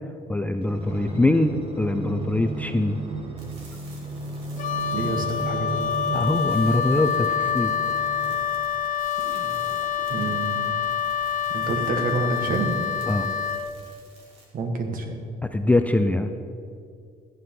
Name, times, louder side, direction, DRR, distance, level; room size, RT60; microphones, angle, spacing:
voice 1, 0.3-3.0 6.1-7.7 13.1-13.3 15.4-16.3, left 2 dB, 10° left, 7 dB, 0.4 m, -23 dB
sound 1, 0.6-8.6 9.2-10.5 11.1-11.2, right 2 dB, 35° right, 1.6 m, -35 dB
sound 2, 3.4-14.4, right 2 dB, 85° right, 2.5 m, -53 dB
Wind instrument woodwind instrument, 4.6-13.7, left 8 dB, 50° left, 0.8 m, -27 dB
voice 2, 4.9-5.9 10.1-10.7 11.5-12.7 14.5-15.2, right 3 dB, 55° right, 4 dB, 1.6 m, -28 dB
14.0 x 9.4 x 3.8 m, 2.3 s
cardioid pair, 110°, 17 cm